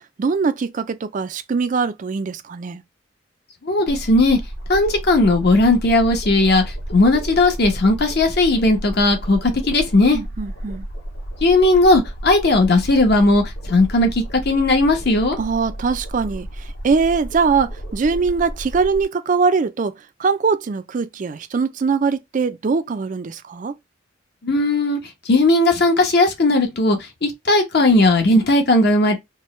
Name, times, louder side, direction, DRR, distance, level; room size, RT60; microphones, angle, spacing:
voice 1, 0.0-2.8 10.1-10.9 15.4-23.7, right 5 dB, 40° right, 0.3 m, -22 dB
voice 2, 3.6-4.4 4.7-10.2 11.4-15.4 24.4-25.0 25.2-29.2, left 2 dB, 55° left, 0.9 m, -17 dB
sound 1, 3.9-19.0, right 1 dB, 75° left, 2.5 m, -32 dB
4.5 x 2.1 x 3.1 m
head